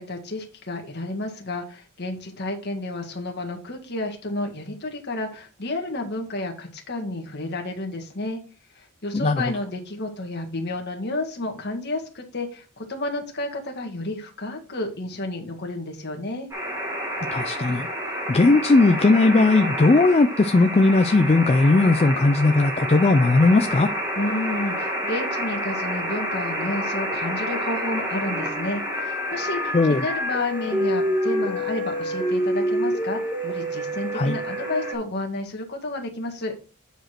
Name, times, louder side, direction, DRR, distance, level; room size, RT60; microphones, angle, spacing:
voice 1, 0.0-8.4 8.7-16.5 24.2-36.5, left 2 dB, 50° left, 1.8 m, -31 dB
voice 2, 9.1-9.5 17.3-17.9 18.3-23.9 29.7-30.0 34.1-34.4, left 3 dB, 30° left, 0.4 m, -18 dB
sound 1, 16.5-34.9, equal, 15° right, 1.9 m, -28 dB
8.9 x 5.0 x 4.4 m
head